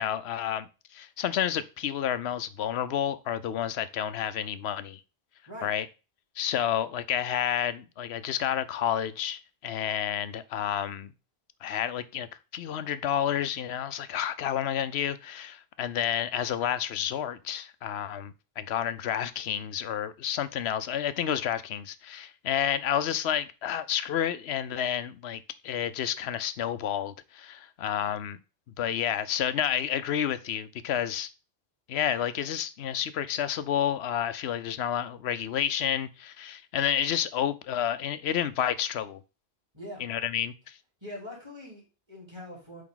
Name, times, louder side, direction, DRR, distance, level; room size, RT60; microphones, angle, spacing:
voice 1, 0.0-5.0 5.6-5.9 6.4-11.1 11.6-12.3 12.5-28.4 28.8-31.3 31.9-39.2 40.0-40.7, left 10 dB, 80° left, 0.9 m, -30 dB
voice 2, 41.0-42.8, left 1 dB, 25° right, 3.6 m, -42 dB
8.5 x 3.5 x 3.8 m
omnidirectional pair, 1.1 m